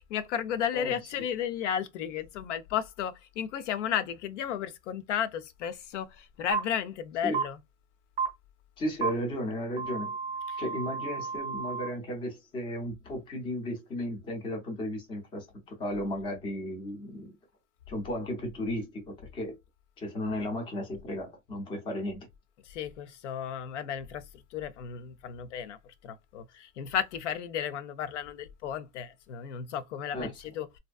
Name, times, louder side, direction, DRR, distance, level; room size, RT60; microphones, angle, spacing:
voice 1, 0.0-7.6 22.7-24.2 24.5-25.8 26.0-30.7, left 9 dB, 55° left, 0.5 m, -33 dB
voice 2, 0.7-1.1 7.2-7.4 8.8-10.1 10.6-17.3 17.9-19.6 20.0-22.3 30.1-30.4, equal, 10° left, 0.6 m, -35 dB
sound 1, 6.5-6.6 7.3-7.4 8.2-8.3 9.0-9.1 9.8-11.9, right 5 dB, 20° right, 0.9 m, -32 dB
2.6 x 2.1 x 2.3 m
hypercardioid pair, 135°, 43 cm